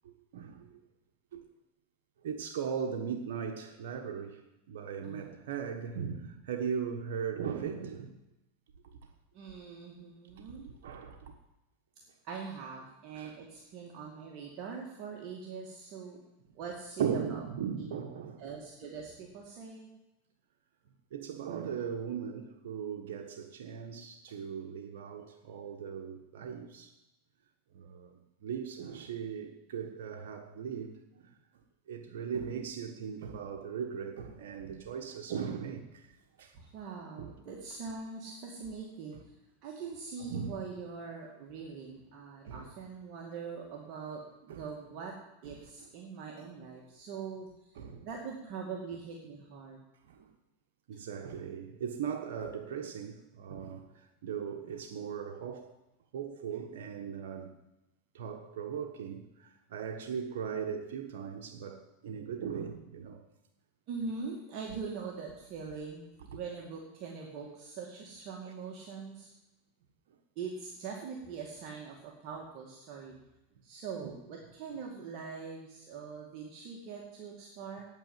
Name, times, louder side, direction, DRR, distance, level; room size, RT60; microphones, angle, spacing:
voice 1, 0.0-0.8 1.3-1.4 2.2-4.4 4.7-8.2 8.8-9.0 10.8-11.3 13.1-13.3 17.0-18.4 21.1-26.9 27.7-28.1 28.4-31.3 31.9-36.1 36.4-36.5 37.2-37.3 39.1-39.2 40.2-40.5 42.5-42.7 44.5-44.6 45.4-45.5 47.8-48.0 50.1-50.3 50.9-55.7 56.1-57.6 58.1-63.2 66.3-66.4 74.0-74.1, right 7 dB, 75° right, 1.3 m, -38 dB
voice 2, 5.0-5.4 9.3-10.7 12.2-16.2 16.5-17.4 17.8-17.9 18.4-19.9 34.6-34.7 36.5-39.3 39.6-45.1 45.4-49.8 63.9-69.3 70.4-73.1 73.6-77.9, right 5 dB, 50° right, 2.3 m, -43 dB
9.1 x 9.0 x 9.0 m
supercardioid pair, 125°, 0 cm